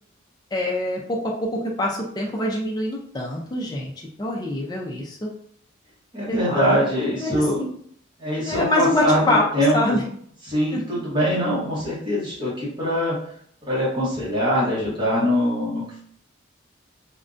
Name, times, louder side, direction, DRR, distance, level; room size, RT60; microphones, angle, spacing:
voice 1, 0.5-3.9 4.2-5.3 6.3-7.7 8.2-10.0 10.7-10.8, left 1 dB, 20° left, -1 dB, 0.3 m, -25 dB
voice 2, 6.1-7.6 8.2-9.8 10.5-13.2 13.7-16.0, equal, 25° right, -7 dB, 0.8 m, -23 dB
2.4 x 2.1 x 2.4 m, 0.63 s
head